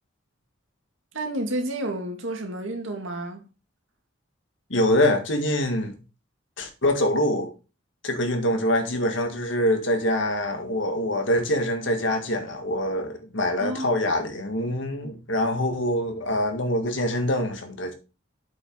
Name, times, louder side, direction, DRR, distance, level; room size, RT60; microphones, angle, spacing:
voice 1, 1.1-3.4 13.6-13.9, right 1 dB, 75° right, 2.3 m, -30 dB
voice 2, 4.7-5.9 6.6-7.5 8.0-17.9, left 1 dB, 70° left, 1.9 m, -24 dB
8.0 x 6.1 x 4.7 m
head